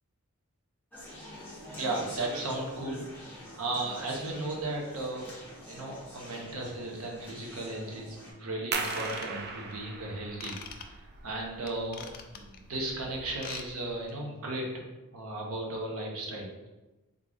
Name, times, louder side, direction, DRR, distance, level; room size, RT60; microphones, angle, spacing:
Conversation, 0.9-8.3, equal, 10° left, 0.9 m, -45 dB
voice 1, 1.8-5.3 5.7-10.9 11.2-12.0 12.3-14.9 15.1-16.5, right 2 dB, 75° right, -1 dB, 0.8 m, -35 dB
sound 1, 8.7-14.1, right 4 dB, 50° right, 0.4 m, -39 dB
Ratchet pawl / Tools, 8.8-9.7 10.4-10.8 11.7-12.6 13.3-13.7 13.9-14.1 14.6-14.7, left 7 dB, 40° left, 0.3 m, -43 dB
3.7 x 2.4 x 3.5 m, 1.1 s
head